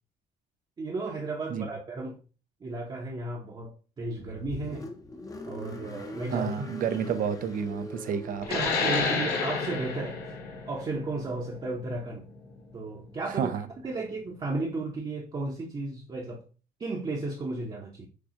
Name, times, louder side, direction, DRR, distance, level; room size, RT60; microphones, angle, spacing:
voice 1, 0.8-2.2 2.6-4.9 5.5-6.9 8.5-10.2 10.7-12.3 12.7-13.5 13.8-16.5 16.8-18.1, right 2 dB, 30° right, 0.8 m, -34 dB
Car, 4.1-9.5, left 2 dB, 20° left, 0.8 m, -42 dB
voice 2, 6.3-8.5 13.3-13.7, right 7 dB, 55° right, 0.6 m, -30 dB
sound 1, 8.4-13.6, left 4 dB, 65° left, 1.3 m, -31 dB
6.4 x 2.3 x 2.9 m
cardioid pair, 110°, 17 cm